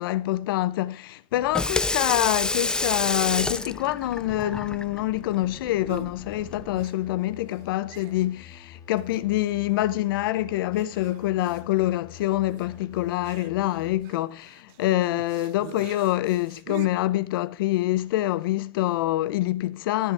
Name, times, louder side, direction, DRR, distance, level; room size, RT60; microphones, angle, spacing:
voice 1, 0.0-20.1, left 15 dB, 90° left, 0.8 m, -26 dB
Water tap faucet / Sink (filling or washing), 1.3-6.8, left 2 dB, 5° left, 0.5 m, -29 dB
sound 1, 5.9-6.2 6.7-7.3 7.5-7.6 7.9-8.5 9.0-9.5 9.8-9.9 10.8-16.9, right 13 dB, 70° right, 1.1 m, -45 dB
sound 2, 6.3-13.9, left 8 dB, 30° left, 2.3 m, -48 dB
14.0 x 12.0 x 3.5 m
supercardioid pair, 120°, 12 cm